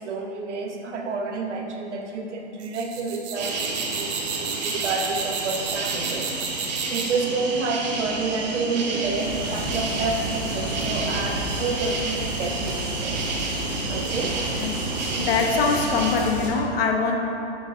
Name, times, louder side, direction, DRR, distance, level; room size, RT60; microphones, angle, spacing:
voice 1, 0.0-13.4 13.9-14.4, right 3 dB, 85° right, 3 dB, 0.8 m, -29 dB
sound 1, 2.6-7.2, right 6 dB, 65° right, 1.2 m, -32 dB
sound 2, 3.3-16.1, right 3 dB, 40° right, 0.8 m, -30 dB
sound 3, 9.0-16.5, equal, 10° left, 0.3 m, -32 dB
voice 2, 15.0-17.2, left 4 dB, 55° left, 2 dB, 0.8 m, -23 dB
9.8 x 3.9 x 2.5 m, 2.8 s
hypercardioid pair, 160°, 34 cm